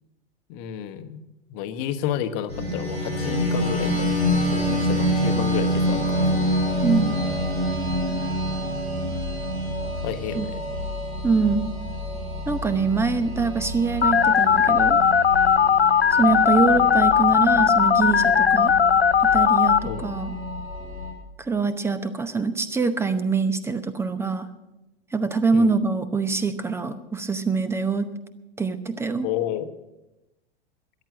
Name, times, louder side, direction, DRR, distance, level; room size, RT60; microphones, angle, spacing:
voice 1, 0.5-4.1 4.5-6.5 10.0-10.6 19.8-20.1 25.5-25.7 29.2-29.7, left 10 dB, 40° left, 11 dB, 1.1 m, -31 dB
sound 1, 2.5-21.1, equal, 75° right, 4.8 m, -27 dB
voice 2, 6.8-7.1 10.3-10.5 11.2-11.7 12.5-15.0 16.1-18.7 19.2-20.3 21.4-24.5 25.1-28.1 28.6-29.3, right 4 dB, 10° right, 12 dB, 0.8 m, -24 dB
Telephone, 14.0-19.8, left 7 dB, 85° left, 0.6 m, -18 dB
13.5 x 10.5 x 7.3 m, 0.98 s
figure-of-eight pair, 95°, 31 cm